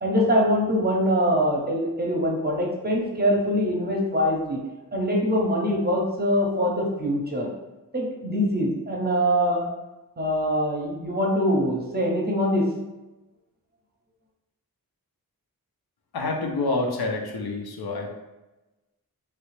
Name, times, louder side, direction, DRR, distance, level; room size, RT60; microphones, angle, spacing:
voice 1, 0.0-4.6 4.9-7.5 7.9-9.7 10.2-12.7, equal, 25° right, -2 dB, 0.6 m, -23 dB
voice 2, 16.1-18.1, left 2 dB, 80° left, 1 dB, 0.6 m, -27 dB
3.1 x 2.4 x 3.1 m, 1.0 s
wide cardioid pair, 95°, 37 cm